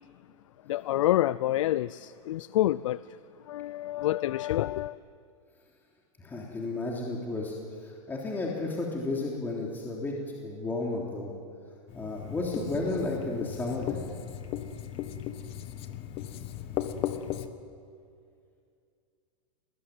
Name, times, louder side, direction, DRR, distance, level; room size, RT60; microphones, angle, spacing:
voice 1, 0.7-3.2 3.5-5.0, left 14 dB, 70° left, 0.6 m, -28 dB
voice 2, 6.2-7.5 7.8-10.2 10.4-11.3 11.9-14.1, left 2 dB, 10° left, 3.3 m, -32 dB
Writing, 11.9-17.5, left 11 dB, 35° left, 1.5 m, -37 dB
28.0 x 20.0 x 9.3 m
supercardioid pair, 145°, 17 cm